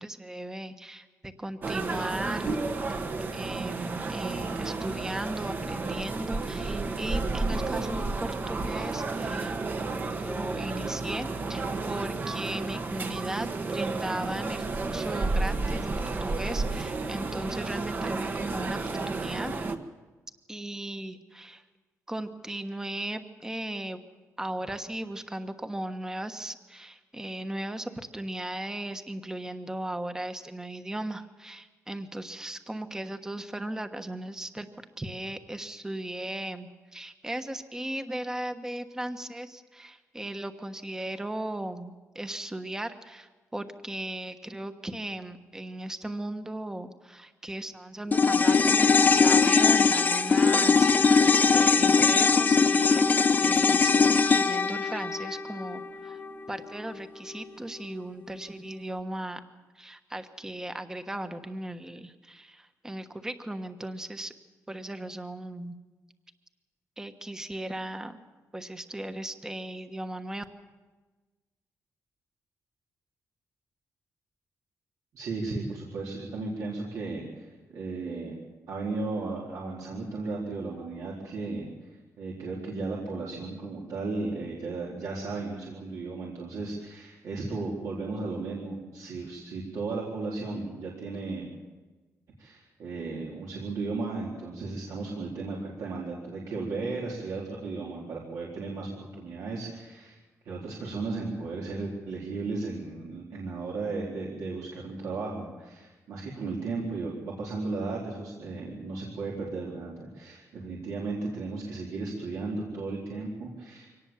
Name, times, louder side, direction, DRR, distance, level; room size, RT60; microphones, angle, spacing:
voice 1, 0.0-2.5 3.3-9.6 10.2-19.6 20.5-21.6 22.1-24.0 24.4-34.7 35.0-53.0 53.4-56.2 56.5-59.4 59.7-64.3 64.7-65.8 67.0-68.2 68.5-70.4, right 1 dB, 10° right, 8 dB, 1.2 m, -37 dB
sound 1, 1.6-19.8, right 3 dB, 35° right, 1.4 m, -31 dB
sound 2, 48.1-56.6 56.9-57.0, left 5 dB, 30° left, 1.1 m, -21 dB
voice 2, 75.1-78.3 78.7-91.5 92.4-100.2 100.5-113.9, right 3 dB, 75° right, -4 dB, 4.2 m, -35 dB
24.0 x 18.5 x 7.3 m, 1.2 s
wide cardioid pair, 145°, 6 cm